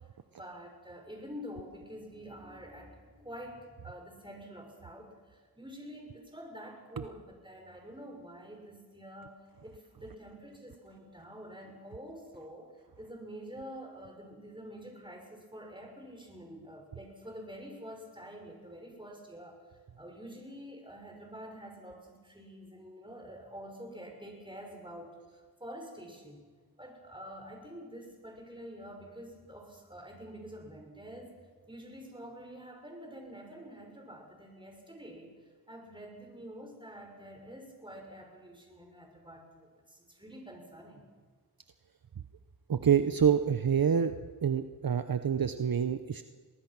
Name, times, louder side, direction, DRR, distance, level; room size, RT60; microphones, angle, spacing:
voice 1, 0.3-19.6 20.0-26.4 26.8-31.3 31.7-35.3 35.7-41.0, equal, 10° right, 2 dB, 6.3 m, -47 dB
voice 2, 42.7-44.1 44.4-46.2, right 8 dB, 60° right, 9 dB, 0.9 m, -26 dB
23.0 x 19.0 x 6.1 m, 1.5 s
cardioid pair, 50°, 39 cm